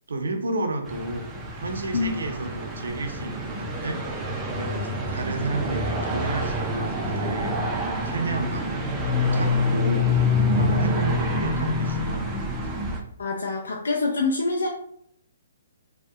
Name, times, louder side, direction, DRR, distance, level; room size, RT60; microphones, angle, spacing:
voice 1, 0.1-10.1 10.5-12.7, right 2 dB, 85° right, 4 dB, 0.5 m, -32 dB
sound 1, 0.8-13.0, left 2 dB, 10° right, 0.4 m, -26 dB
voice 2, 13.2-14.7, left 3 dB, 85° left, -1 dB, 0.4 m, -25 dB
2.7 x 2.1 x 2.2 m, 0.69 s
hypercardioid pair, 150°, 0 cm